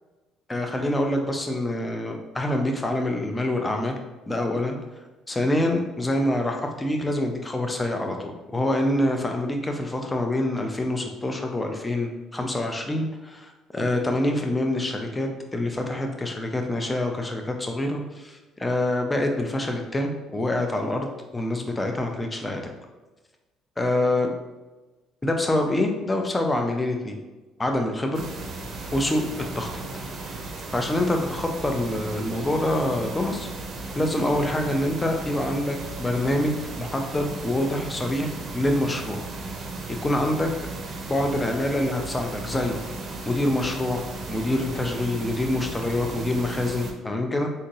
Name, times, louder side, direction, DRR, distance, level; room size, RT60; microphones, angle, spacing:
voice 1, 0.5-4.0 4.3-4.8 5.3-22.7 23.8-24.3 25.2-27.2 27.6-28.2 28.9-29.2 29.6-29.8 30.2-30.3 30.7-33.5 33.9-39.2 39.9-40.5 41.1-42.8 43.3-44.0 44.3-47.5, left 1 dB, 20° left, 3 dB, 0.6 m, -26 dB
sound 1, 28.1-46.9, right 3 dB, 55° right, 0.6 m, -36 dB
3.8 x 2.7 x 2.5 m, 1.2 s
supercardioid pair, 65°, 0 cm